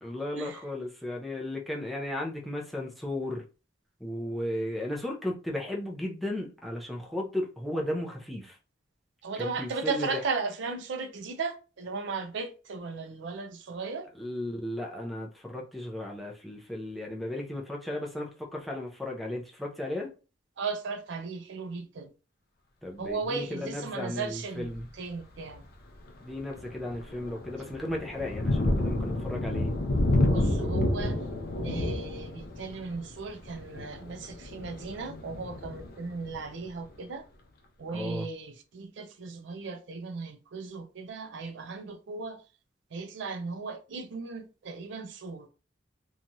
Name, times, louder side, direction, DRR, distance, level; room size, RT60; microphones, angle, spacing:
voice 1, 0.0-3.4 4.0-8.6 9.4-10.2 14.1-20.1 22.8-24.9 26.2-29.7 37.9-38.3, left 1 dB, ahead, 0.5 m, -35 dB
voice 2, 9.2-14.1 20.6-22.1 23.0-25.6 30.2-31.1 31.6-37.2 37.8-42.4 42.9-45.5, right 4 dB, 65° right, 0.4 m, -36 dB
Thunder, 24.6-24.9 25.5-25.6 26.1-36.6, left 1 dB, 50° left, 0.5 m, -30 dB
2.9 x 2.3 x 2.6 m
head